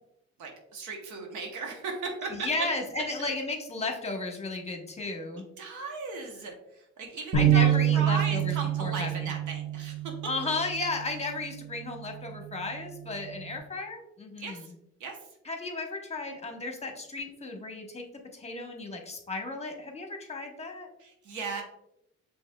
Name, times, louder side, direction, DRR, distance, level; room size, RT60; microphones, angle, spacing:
voice 1, 0.4-2.5 5.6-10.0 14.4-14.7 15.0-15.2 21.0-21.6, right 4 dB, 75° right, 2 dB, 0.9 m, -37 dB
voice 2, 2.3-5.4 7.3-9.3 10.2-14.7 15.4-18.0 18.3-20.9, left 3 dB, 20° left, 3 dB, 0.9 m, -34 dB
sound 1, 7.3-13.6, right 10 dB, 45° right, 1.3 m, -28 dB
5.3 x 3.2 x 2.2 m, 0.80 s
cardioid pair, 90°, 30 cm